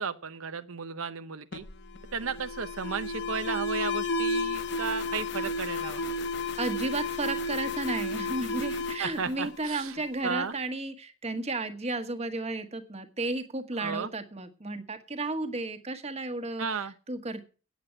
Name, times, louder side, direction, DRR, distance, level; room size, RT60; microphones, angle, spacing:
voice 1, 0.0-1.6 2.1-6.1 9.0-9.9 10.2-10.5 13.8-14.1 16.6-16.9, right 5 dB, 80° right, 9 dB, 0.8 m, -34 dB
Alarm, 1.5-10.1, left 2 dB, 55° left, 0.9 m, -32 dB
voice 2, 6.6-17.4, right 2 dB, 30° right, 7 dB, 1.3 m, -33 dB
9.3 x 7.6 x 9.1 m, 0.36 s
head